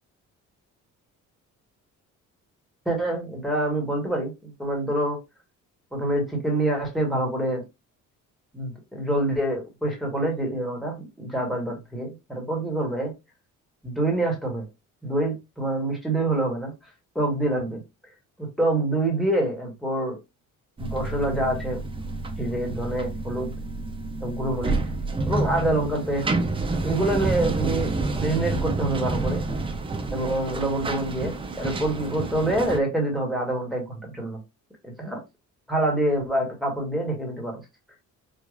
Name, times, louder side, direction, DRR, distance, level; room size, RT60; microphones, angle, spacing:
voice 1, 2.8-5.2 5.9-7.6 8.5-13.1 13.8-14.7 15.0-16.7 17.1-17.8 18.4-20.2 20.8-21.8 22.4-23.5 24.2-24.8 25.3-26.3 26.8-27.9 28.2-29.4 30.1-31.3 31.6-34.4 34.8-35.2 35.7-37.6, right 1 dB, ahead, 1.4 m, -26 dB
sound 1, 20.8-32.8, right 3 dB, 15° right, 0.5 m, -29 dB
4.8 x 2.4 x 2.4 m
cardioid pair, 160°, 31 cm